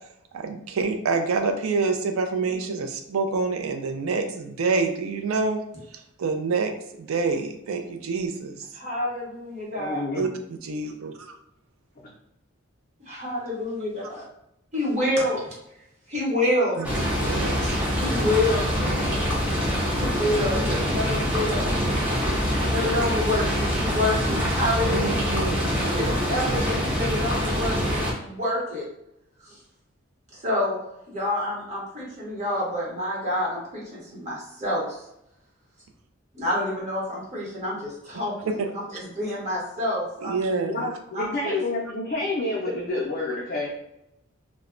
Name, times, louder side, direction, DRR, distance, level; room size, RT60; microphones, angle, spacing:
voice 1, 0.3-5.6 5.9-6.7 7.0-8.7 10.1-11.4 16.8-16.9 17.2-17.8 24.9-26.2 38.5-38.7 40.2-40.9, right 4 dB, 80° right, 6 dB, 0.4 m, -27 dB
voice 2, 8.7-10.0 13.0-14.2 14.7-15.5 16.1-16.8 18.0-19.2 19.9-21.8 22.2-25.2 25.9-28.8 29.4-29.6 30.3-30.8 31.1-35.0 36.3-38.5 38.9-40.4 41.1-41.6, left 1 dB, 30° right, -6 dB, 0.9 m, -28 dB
voice 3, 9.8-10.3 12.0-12.1 40.6-43.8, left 2 dB, 45° left, -3 dB, 0.4 m, -29 dB
sound 1, 16.8-28.1, equal, 5° right, 0.5 m, -25 dB
2.1 x 2.1 x 3.6 m, 0.82 s
head